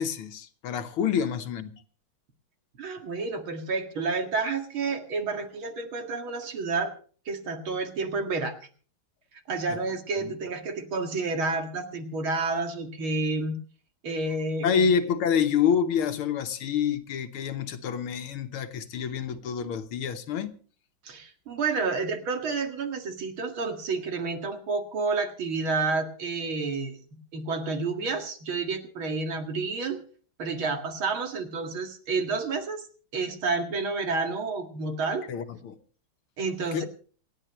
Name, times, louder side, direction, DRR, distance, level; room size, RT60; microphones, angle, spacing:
voice 1, 0.0-1.7 10.2-10.3 14.6-20.5 35.3-35.8 36.7-36.8, left 7 dB, 90° left, 2.1 m, -27 dB
voice 2, 2.8-6.9 7.3-8.6 9.5-13.6 14.0-14.9 21.0-27.0 27.3-30.0 30.4-32.8 33.1-35.3 36.4-36.9, right 3 dB, 75° right, 2.9 m, -30 dB
27.5 x 10.0 x 3.2 m
omnidirectional pair, 2.3 m